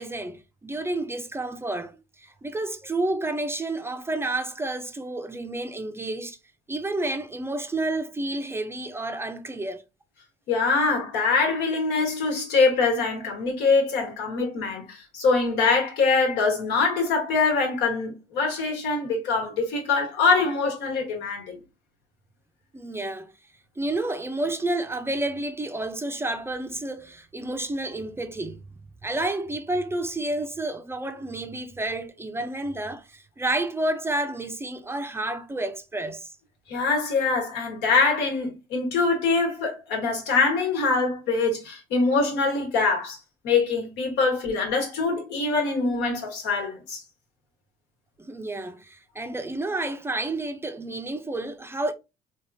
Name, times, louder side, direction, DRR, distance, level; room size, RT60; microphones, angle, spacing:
voice 1, 0.0-6.4 6.7-9.8 22.7-23.3 23.8-28.6 29.0-36.3 48.2-51.9, right 2 dB, 15° right, 0.4 m, -30 dB
voice 2, 10.5-21.6 36.7-43.2 43.4-47.0, left 4 dB, 85° left, 1.4 m, -24 dB
3.4 x 2.9 x 2.7 m
cardioid pair, 110°, 17 cm